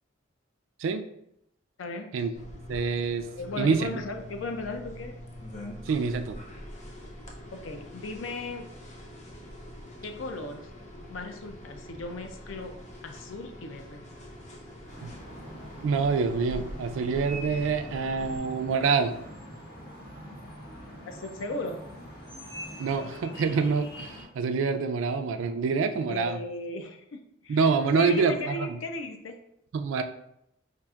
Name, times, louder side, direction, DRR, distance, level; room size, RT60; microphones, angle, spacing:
voice 1, 1.8-2.2 3.4-5.2 7.5-8.7 10.0-10.7 11.1-12.7 13.0-14.0 21.0-21.8 26.1-27.7 28.0-29.4, left 2 dB, 80° left, 6 dB, 0.4 m, -36 dB
sound 1, 2.3-18.4, equal, 35° left, 0.6 m, -44 dB
voice 2, 2.7-3.3 3.6-3.9 5.9-6.4 15.0-15.1 15.8-19.2 22.8-26.4 27.5-28.8 29.7-30.0, right 5 dB, 85° right, 9 dB, 0.3 m, -26 dB
sound 2, 14.9-24.2, equal, 50° left, 1.3 m, -44 dB
5.5 x 2.5 x 2.3 m, 0.78 s
head